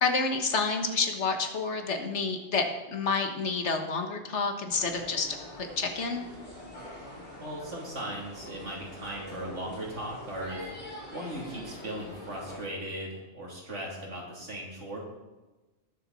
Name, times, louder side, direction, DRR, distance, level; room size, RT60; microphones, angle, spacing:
voice 1, 0.0-5.3 5.5-6.2, left 4 dB, 75° left, 5 dB, 1.7 m, -29 dB
sound 1, 4.7-12.6, left 1 dB, 55° left, 4.2 m, -44 dB
voice 2, 7.4-10.7 11.1-15.0, right 1 dB, 85° right, -3 dB, 3.4 m, -38 dB
19.5 x 7.4 x 4.1 m, 1.1 s
omnidirectional pair, 1.2 m